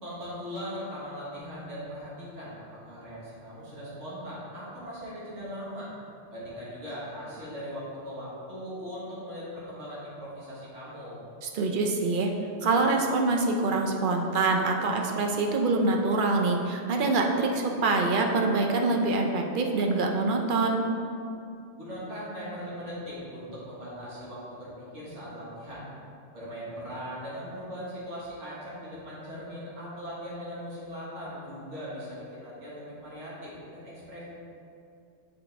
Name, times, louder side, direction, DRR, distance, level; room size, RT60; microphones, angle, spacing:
voice 1, 0.0-5.9 6.3-11.2 21.8-25.9 26.3-34.2, equal, 75° right, -8 dB, 1.9 m, -39 dB
voice 2, 11.4-12.3 12.6-20.9, right 3 dB, 50° right, 2 dB, 0.7 m, -25 dB
7.2 x 5.2 x 3.4 m, 2.5 s
omnidirectional pair, 1.2 m